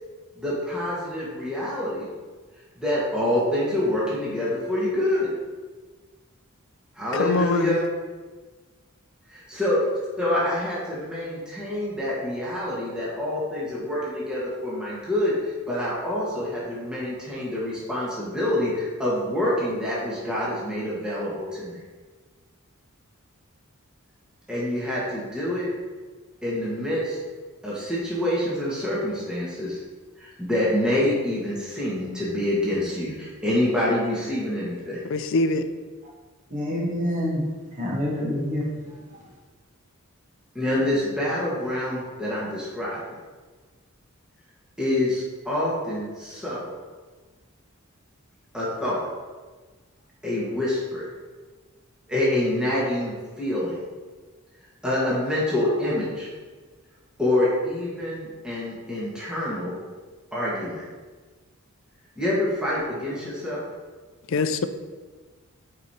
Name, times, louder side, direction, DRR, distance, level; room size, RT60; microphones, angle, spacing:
voice 1, 0.3-2.1 2.8-5.3 6.9-7.8 9.5-9.8 10.2-15.3 15.7-21.8 24.5-25.7 26.4-27.2 27.6-29.8 30.2-35.0 40.5-43.0 44.8-46.7 48.5-49.0 50.2-51.1 52.1-53.8 54.8-56.3 57.2-59.7 60.3-60.8 62.2-63.6, left 1 dB, 5° right, -8 dB, 1.4 m, -26 dB
voice 2, 7.1-7.8 35.0-35.7 64.3-64.7, left 3 dB, 65° left, 10 dB, 0.4 m, -23 dB
voice 3, 36.5-37.4 37.8-38.6, left 1 dB, 40° right, -4 dB, 1.1 m, -26 dB
8.1 x 4.6 x 2.8 m, 1.4 s
head